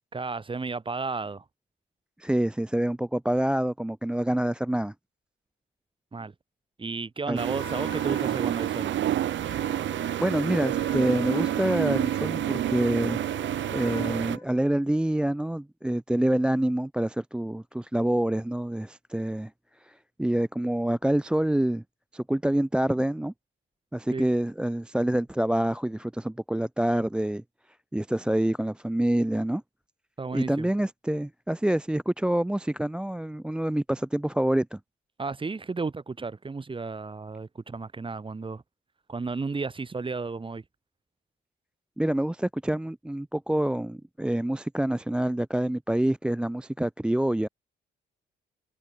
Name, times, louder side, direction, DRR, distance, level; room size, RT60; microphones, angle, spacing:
voice 1, 0.1-1.4 6.1-6.3 6.8-9.0 24.1-24.3 30.2-30.7 35.2-38.6 39.1-40.6, right 4 dB, 25° right, 2.9 m, -33 dB
voice 2, 2.2-4.9 7.3-7.4 10.2-13.2 13.7-19.5 19.8-21.8 22.1-23.3 23.9-27.4 27.9-29.6 30.3-34.8 42.0-47.5, right 1 dB, 5° right, 0.4 m, -26 dB
sound 1, 7.4-14.4, right 12 dB, 70° right, 1.2 m, -28 dB
Trumpet, 7.6-14.5, left 3 dB, 20° left, 4.9 m, -44 dB
cardioid pair, 90°, 20 cm